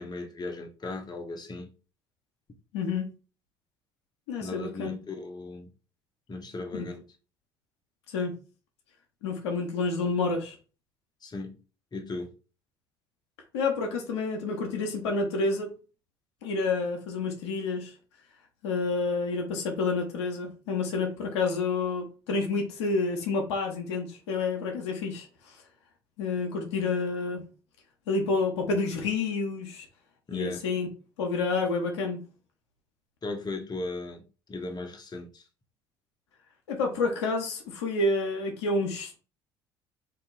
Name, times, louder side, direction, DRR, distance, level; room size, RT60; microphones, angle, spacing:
voice 1, 0.0-1.7 4.4-5.7 6.3-7.0 11.2-11.6 11.9-12.3 30.3-30.6 33.2-35.4, left 2 dB, 30° left, 1.0 m, -37 dB
voice 2, 2.7-3.2 4.3-4.9 6.7-6.9 8.1-8.4 9.2-10.6 13.5-15.7 16.4-17.9 18.6-25.3 26.2-27.4 28.1-29.8 30.3-30.9 31.2-32.2 36.7-39.2, left 3 dB, 85° left, 0.8 m, -29 dB
2.9 x 2.7 x 3.8 m
hypercardioid pair, 60°, 14 cm